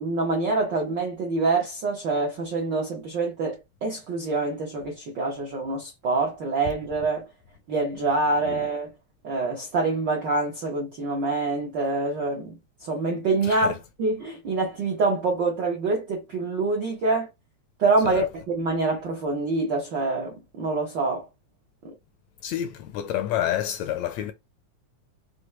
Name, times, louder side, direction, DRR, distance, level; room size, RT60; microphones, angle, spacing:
voice 1, 0.0-7.3 7.7-8.9 9.2-17.3 17.8-21.3 21.8-21.9, right 3 dB, 70° right, 1.0 m, -26 dB
voice 2, 13.4-13.8 18.1-18.3 22.4-24.3, left 11 dB, 80° left, 1.7 m, -29 dB
6.0 x 2.3 x 3.1 m
omnidirectional pair, 3.5 m